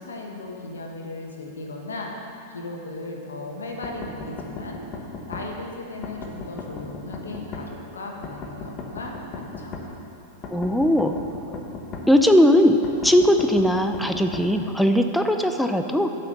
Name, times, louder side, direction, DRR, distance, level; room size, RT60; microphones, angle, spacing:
voice 1, 0.0-9.8, left 2 dB, 85° left, 0 dB, 1.4 m, -36 dB
sound 1, 3.8-5.5 6.0-7.7 8.2-9.9 10.4-12.1 12.8-14.5, left 4 dB, 35° left, 1.4 m, -36 dB
voice 2, 10.5-11.1 12.1-12.8 13.0-16.1, equal, ahead, 6 dB, 0.5 m, -19 dB
8.9 x 5.8 x 6.7 m, 3.0 s
hypercardioid pair, 105°, 0 cm